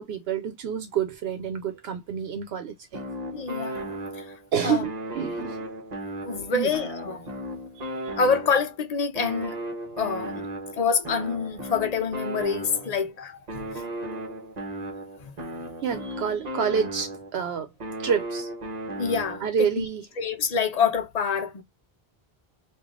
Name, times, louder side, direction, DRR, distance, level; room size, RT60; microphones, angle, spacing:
voice 1, 0.0-3.1 4.5-5.6 6.3-6.7 7.8-8.2 15.8-17.7 18.0-18.5 19.4-20.1, right 7 dB, 80° right, 0.9 m, -28 dB
sound 1, 2.9-4.5 4.8-8.8 9.2-13.0 13.5-17.4 17.8-19.6, right 1 dB, 45° right, 1.0 m, -35 dB
voice 2, 3.3-4.3 4.6-4.9 6.2-7.3 8.2-9.6 10.0-10.5 10.7-13.8 15.2-15.3 19.0-19.9 20.2-21.6, left 5 dB, 45° left, 0.6 m, -27 dB
3.2 x 2.5 x 3.6 m
omnidirectional pair, 1.0 m